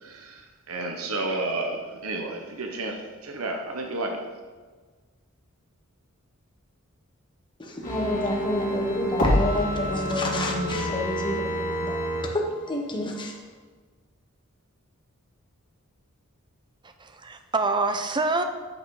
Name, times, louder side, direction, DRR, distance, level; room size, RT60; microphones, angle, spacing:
voice 1, 0.0-4.2, right 2 dB, 80° right, 3 dB, 1.0 m, -31 dB
voice 2, 7.6-12.0 12.3-13.4, left 1 dB, 20° left, 0 dB, 1.1 m, -29 dB
sound 1, 7.8-12.2 12.6-12.7, equal, 40° left, 2.4 m, -27 dB
voice 3, 16.8-18.4, right 3 dB, 20° right, 7 dB, 0.6 m, -26 dB
8.5 x 5.2 x 4.8 m, 1.4 s
head